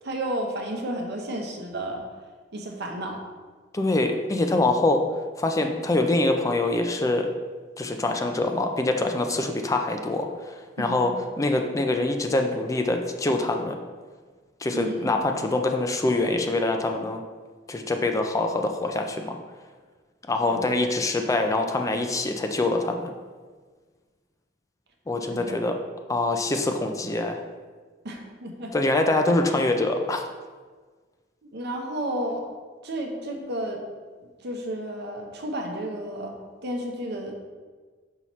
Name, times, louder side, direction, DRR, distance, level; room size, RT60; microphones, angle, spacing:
voice 1, 0.0-2.0 2.5-3.2 10.8-11.2 14.7-15.5 20.5-20.6 25.3-25.6 28.0-28.7 31.5-32.5 32.8-33.8 34.4-37.3, right 1 dB, 60° right, 2 dB, 0.9 m, -32 dB
voice 2, 3.7-5.0 5.4-7.3 7.8-11.1 11.4-13.8 14.6-17.2 17.7-19.3 20.3-23.1 25.1-25.7 26.1-27.4 28.7-30.2, left 2 dB, 15° left, 4 dB, 0.4 m, -24 dB
5.6 x 5.6 x 3.1 m, 1.5 s
head